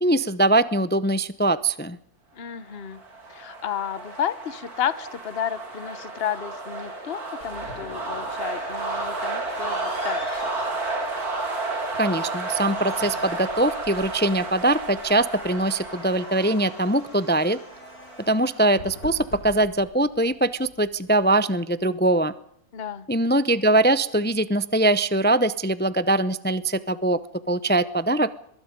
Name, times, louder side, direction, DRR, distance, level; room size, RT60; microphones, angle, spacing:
voice 1, 0.0-2.0 12.0-17.6 18.3-22.3 23.1-27.2 27.5-28.3, right 2 dB, 15° left, 15 dB, 0.3 m, -22 dB
voice 2, 2.3-3.0 3.3-10.5 22.7-23.1, left 9 dB, 45° left, 15 dB, 1.2 m, -32 dB
sound 1, 2.7-19.4, right 3 dB, 90° right, 3.7 m, -32 dB
sound 2, 7.4-21.5, left 3 dB, 85° left, 3.5 m, -46 dB
23.5 x 22.0 x 5.2 m, 0.70 s
omnidirectional pair, 1.6 m